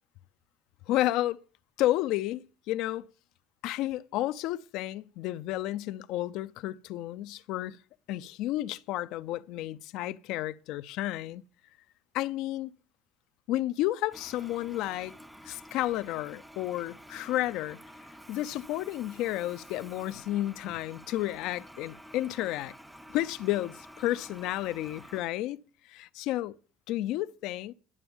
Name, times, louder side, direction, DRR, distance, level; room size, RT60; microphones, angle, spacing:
voice 1, 0.9-1.4 1.8-3.1 3.6-7.8 8.1-11.4 12.1-12.7 13.5-15.1 15.4-17.8 18.3-22.7 23.1-25.6 25.8-26.6 26.9-27.7, left 15 dB, 65° left, 0.5 m, -31 dB
Toilet flush, 14.1-25.2, equal, 5° right, 0.5 m, -50 dB
11.0 x 6.8 x 7.1 m
cardioid pair, 135°, 0 cm